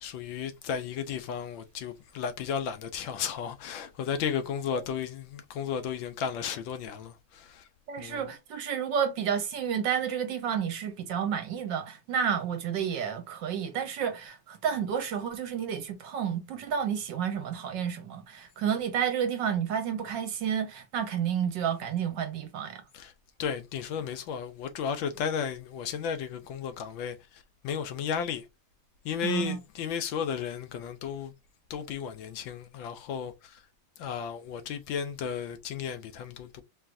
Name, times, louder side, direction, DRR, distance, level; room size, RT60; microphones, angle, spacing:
voice 1, 0.0-7.7 8.0-8.3 22.9-23.1 23.4-28.4 29.0-31.3 31.7-33.6 34.0-36.6, left 7 dB, 75° left, 1.3 m, -34 dB
voice 2, 7.9-22.8 29.2-29.6, right 8 dB, 65° right, 1.3 m, -30 dB
4.7 x 3.1 x 2.5 m
omnidirectional pair, 2.3 m